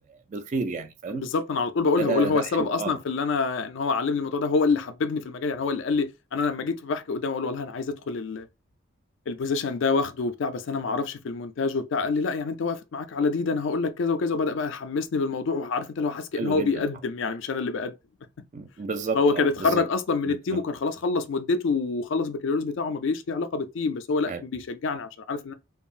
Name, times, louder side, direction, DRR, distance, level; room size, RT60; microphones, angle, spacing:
voice 1, 0.1-1.2 2.0-3.0 16.4-16.8 18.5-19.8 20.3-20.6 24.3-24.4, right 4 dB, 35° right, 0.3 m, -31 dB
voice 2, 1.1-8.5 9.3-17.9 19.1-25.5, left 4 dB, 60° left, 0.4 m, -26 dB
3.4 x 2.0 x 2.4 m
head